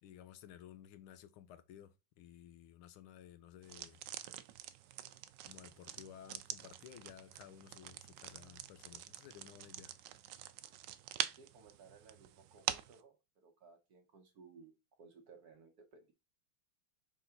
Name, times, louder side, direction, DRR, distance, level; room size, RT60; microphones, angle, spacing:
voice 1, 0.0-4.0 5.4-9.9, left 10 dB, 75° left, 1.4 m, -55 dB
sound 1, 3.6-13.0, right 12 dB, 75° right, 1.0 m, -45 dB
voice 2, 11.4-14.7 15.0-16.1, right 4 dB, 55° right, 1.2 m, -60 dB
4.6 x 3.9 x 5.7 m
omnidirectional pair, 2.4 m